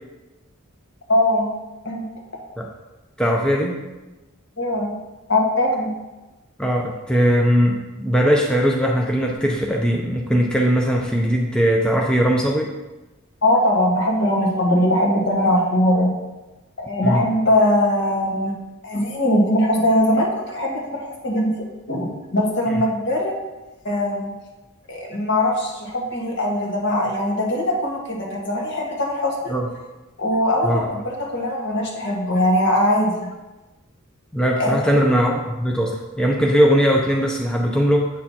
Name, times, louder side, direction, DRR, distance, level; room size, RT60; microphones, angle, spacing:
voice 1, 1.1-1.5 1.8-2.0 4.6-4.9 5.3-5.9 13.4-16.1 16.8-18.5 18.8-23.3 23.8-24.3 24.9-29.5 30.2-33.3 34.6-34.9, left 1 dB, 55° left, -2 dB, 1.6 m, -21 dB
voice 2, 3.2-3.8 6.6-12.7 17.0-17.2 22.7-22.8 29.5-29.7 30.6-30.9 34.3-38.1, equal, 5° left, -1 dB, 0.5 m, -19 dB
8.7 x 6.5 x 2.8 m, 1.1 s
head